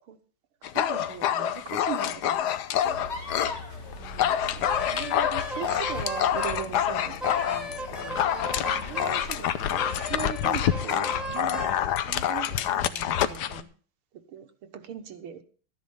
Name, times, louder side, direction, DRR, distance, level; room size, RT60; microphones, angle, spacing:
Dog, 0.6-3.6 3.9-13.6, left 10 dB, 65° left, 1.1 m, -27 dB
voice 1, 0.7-2.5 2.8-3.1 4.0-7.2 7.4-8.2 8.8-11.7 12.0-13.7 14.3-14.5 14.7-15.4, right 8 dB, 85° right, 7 dB, 2.1 m, -39 dB
sound 1, 2.8-10.1, left 2 dB, 30° left, 2.5 m, -41 dB
Wind instrument woodwind instrument, 4.6-6.6 7.2-9.2 9.8-11.8, right 1 dB, ahead, 2.6 m, -36 dB
12.5 x 10.5 x 5.4 m, 0.40 s
omnidirectional pair, 2.3 m